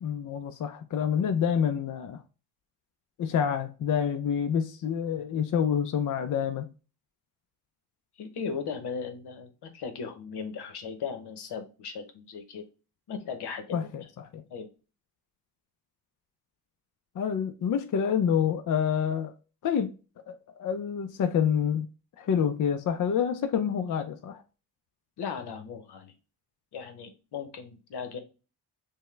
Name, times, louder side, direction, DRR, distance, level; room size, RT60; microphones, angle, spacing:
voice 1, 0.0-2.2 3.2-6.7 13.7-14.4 17.2-19.3 19.6-20.0 20.3-21.9 22.2-24.4, left 8 dB, 50° left, 0.5 m, -27 dB
voice 2, 8.2-12.7 13.1-13.9 14.5-14.7 25.2-26.1 26.7-28.2, left 6 dB, 85° left, 0.9 m, -37 dB
5.4 x 2.2 x 3.2 m
cardioid pair, 95°, 39 cm